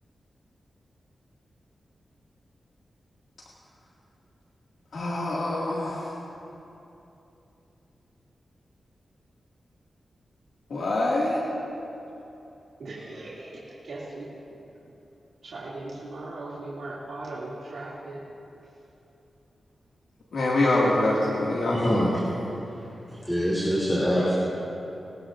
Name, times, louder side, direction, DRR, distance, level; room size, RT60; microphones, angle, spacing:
voice 1, 4.9-6.1 10.7-11.4 20.3-22.1, left 1 dB, 85° left, -6 dB, 2.1 m, -25 dB
voice 2, 12.8-14.3 15.4-18.2, right 2 dB, 85° right, -9 dB, 2.5 m, -38 dB
voice 3, 21.7-22.1 23.1-24.4, equal, 5° left, -7 dB, 2.9 m, -25 dB
24.5 x 14.0 x 2.6 m, 2.9 s
cardioid pair, 80°, 0 cm